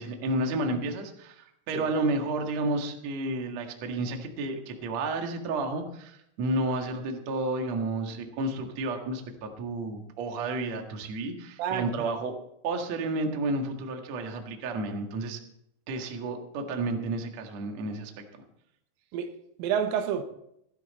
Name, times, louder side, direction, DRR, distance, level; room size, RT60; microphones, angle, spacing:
voice 1, 0.0-12.3 12.6-15.4 15.9-18.1, right 2 dB, 55° right, 2.0 m, -31 dB
voice 2, 11.6-12.1 19.1-20.2, right 8 dB, 85° right, 3.8 m, -30 dB
16.0 x 12.5 x 4.2 m
omnidirectional pair, 5.7 m